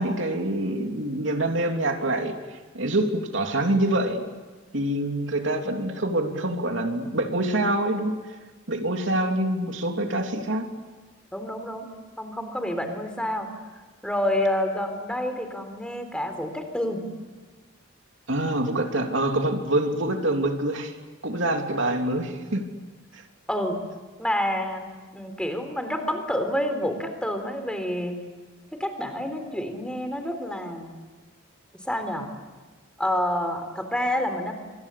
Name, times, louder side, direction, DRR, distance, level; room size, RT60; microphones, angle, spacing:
voice 1, 0.0-2.3 2.7-4.2 4.7-8.1 8.7-10.7 18.3-20.9 21.2-22.7 23.1-23.2, right 1 dB, 70° right, 4 dB, 3.1 m, -25 dB
voice 2, 11.3-11.8 12.2-13.5 14.0-17.0 23.5-23.8 24.2-24.9 25.1-28.2 28.8-30.9 31.8-32.3 33.0-34.5, left 1 dB, 5° left, 6 dB, 3.7 m, -28 dB
26.5 x 26.0 x 8.5 m, 1.3 s
head